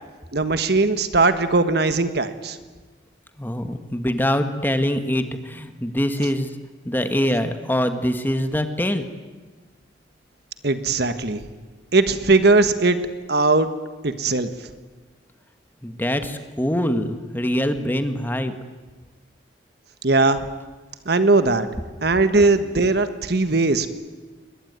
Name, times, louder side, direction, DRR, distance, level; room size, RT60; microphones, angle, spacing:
voice 1, 0.3-2.6 10.6-11.4 11.9-13.0 13.3-13.7 14.0-14.5 20.0-20.4 21.1-21.7 22.0-23.9, right 3 dB, 60° right, 10 dB, 1.4 m, -19 dB
voice 2, 3.4-6.6 6.8-9.1 15.8-18.6, equal, 10° left, 8 dB, 1.5 m, -24 dB
22.5 x 20.5 x 9.6 m, 1.3 s
head